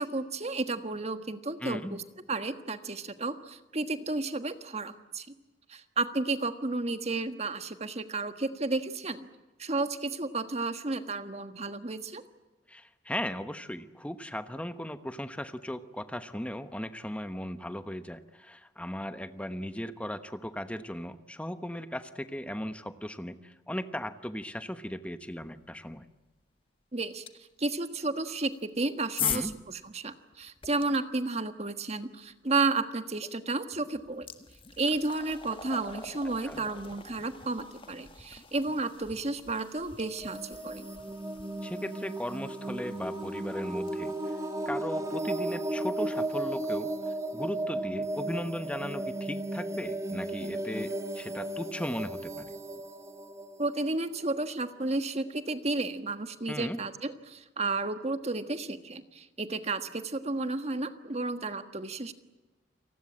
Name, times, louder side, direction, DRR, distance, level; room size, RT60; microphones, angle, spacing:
voice 1, 0.0-2.0 2.3-5.3 5.7-9.3 9.6-12.2 26.9-27.2 27.6-34.3 34.8-40.9 53.6-62.1, right 3 dB, 35° right, 9 dB, 1.5 m, -32 dB
voice 2, 1.6-2.0 12.7-26.1 29.2-29.5 36.4-36.6 41.6-44.4 44.6-46.9 47.3-52.5 56.5-56.8, equal, 5° left, 10 dB, 1.1 m, -37 dB
sound 1, 27.3-27.4 28.4-30.8 33.1-33.3 33.7-44.7, left 7 dB, 30° left, 1.6 m, -42 dB
sound 2, 40.0-54.7, right 1 dB, 20° right, 1.8 m, -35 dB
29.0 x 19.0 x 8.8 m, 1.1 s
head